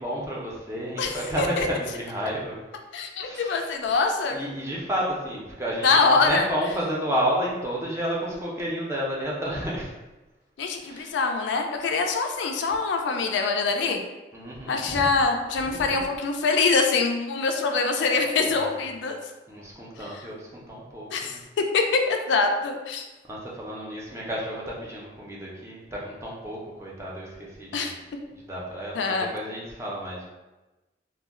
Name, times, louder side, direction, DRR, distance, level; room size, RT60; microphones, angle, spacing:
voice 1, 0.0-2.6 3.2-3.6 4.3-9.9 10.8-11.2 14.3-15.1 15.6-16.0 18.5-18.7 19.5-21.4 23.3-28.0 28.3-30.2, equal, 15° right, -4 dB, 0.5 m, -31 dB
voice 2, 1.0-1.7 2.9-4.4 5.8-6.5 10.6-14.0 14.7-19.2 20.0-20.2 21.1-21.4 21.7-23.0 27.7-27.9 28.9-29.3, left 4 dB, 75° left, 4 dB, 0.3 m, -24 dB
2.2 x 2.0 x 3.5 m, 1.1 s
head